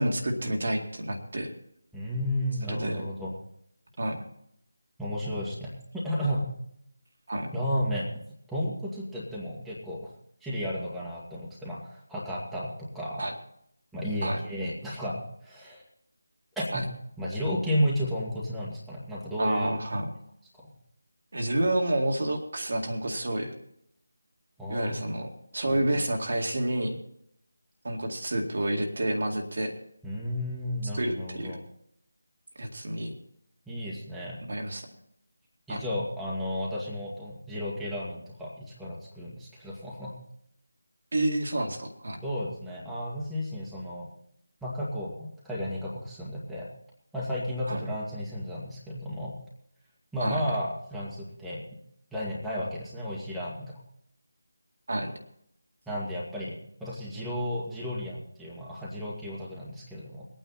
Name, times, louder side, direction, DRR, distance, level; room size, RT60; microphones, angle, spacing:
voice 1, 0.0-1.5 2.7-3.1 4.0-4.2 7.3-7.5 13.2-13.3 14.2-14.4 16.7-16.8 19.4-20.1 21.3-23.5 24.7-27.0 27.8-29.7 31.0-31.6 32.6-33.1 34.5-34.9 35.7-35.8 41.1-42.2 47.7-47.8 50.2-50.4 54.9-55.1, right 1 dB, 50° right, 2 dB, 2.1 m, -29 dB
voice 2, 1.9-3.3 5.0-6.5 7.5-8.1 8.5-10.1 10.4-13.2 13.9-15.8 16.6-16.9 17.2-19.7 20.6-20.7 24.6-24.9 25.7-26.0 30.0-31.6 33.7-34.4 35.7-40.1 42.2-44.1 44.6-46.7 47.1-49.4 50.1-51.6 52.1-53.7 55.9-60.3, equal, ahead, -8 dB, 2.0 m, -33 dB
21.5 x 9.2 x 4.2 m, 0.72 s
figure-of-eight pair, 160°, 0 cm